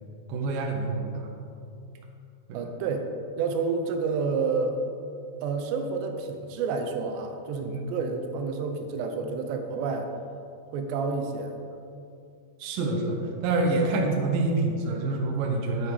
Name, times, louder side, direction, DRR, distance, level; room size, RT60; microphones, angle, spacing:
voice 1, 0.3-1.3 2.5-2.6 7.7-7.9 12.6-15.9, right 2 dB, 65° right, 1 dB, 2.6 m, -27 dB
voice 2, 2.5-3.1 3.4-4.8 5.4-10.1 10.7-11.6, right 4 dB, 90° right, 5 dB, 3.0 m, -29 dB
9.7 x 9.0 x 4.9 m, 2.5 s
omnidirectional pair, 4.8 m